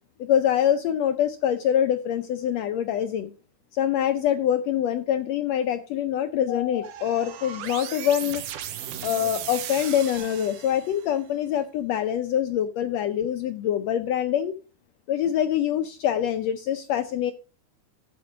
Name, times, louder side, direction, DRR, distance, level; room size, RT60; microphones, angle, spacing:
voice 1, 0.2-3.3 3.7-8.4 9.0-14.6 15.1-17.3, left 10 dB, 85° left, 9 dB, 1.5 m, -25 dB
sound 1, 6.8-11.1, right 10 dB, 85° right, 2.5 m, -36 dB
12.5 x 5.2 x 4.9 m, 0.36 s
omnidirectional pair, 3.7 m